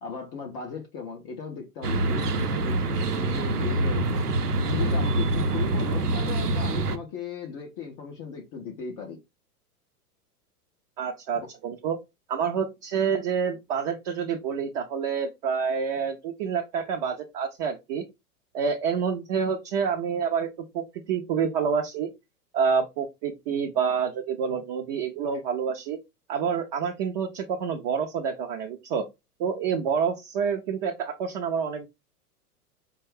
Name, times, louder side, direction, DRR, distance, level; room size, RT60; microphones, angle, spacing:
voice 1, 0.0-4.3 4.6-9.2 11.4-11.5, left 5 dB, 20° left, 0.4 m, -37 dB
sound 1, 1.8-7.0, right 2 dB, 80° right, 0.8 m, -25 dB
voice 2, 11.0-12.0 12.3-18.0 18.5-22.1 22.5-26.0 26.3-29.0 29.4-31.9, right 6 dB, 30° right, 0.5 m, -28 dB
5.2 x 2.3 x 3.3 m
figure-of-eight pair, 100°, 46 cm